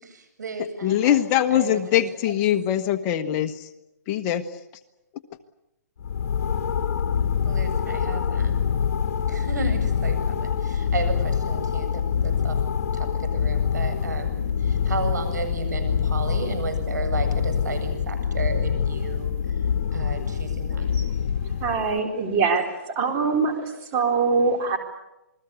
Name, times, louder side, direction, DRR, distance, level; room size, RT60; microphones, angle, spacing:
voice 1, 0.0-1.2 1.5-2.0 7.4-8.8 9.3-12.6 12.9-19.3 19.9-20.9, right 4 dB, 80° right, 9 dB, 7.9 m, -33 dB
voice 2, 0.8-3.7 4.1-4.4, left 11 dB, 25° left, 8 dB, 1.3 m, -22 dB
sound 1, 6.0-22.0, left 7 dB, 55° left, 2.2 m, -25 dB
voice 3, 21.6-22.6 23.0-23.5 23.9-24.8, right 4 dB, 25° right, 3 dB, 4.1 m, -22 dB
28.0 x 21.5 x 8.4 m, 0.91 s
hypercardioid pair, 155°, 9 cm